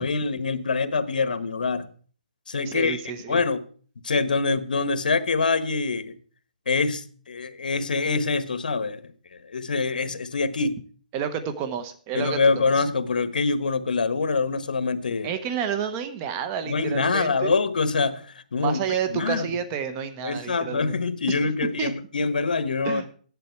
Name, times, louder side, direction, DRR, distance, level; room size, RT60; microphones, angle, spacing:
voice 1, 0.0-1.9 2.5-3.0 3.3-3.6 4.0-6.1 6.7-9.0 9.5-10.8 12.1-15.3 16.6-18.2 18.5-19.5 20.2-23.1, left 4 dB, 75° left, 12 dB, 1.3 m, -25 dB
voice 2, 2.7-3.4 11.1-12.8 15.2-17.6 18.6-21.0 21.3-21.4 21.8-21.9 22.8-23.1, right 8 dB, 20° right, 11 dB, 1.0 m, -30 dB
13.0 x 10.5 x 4.6 m, 0.43 s
hypercardioid pair, 170°, 5 cm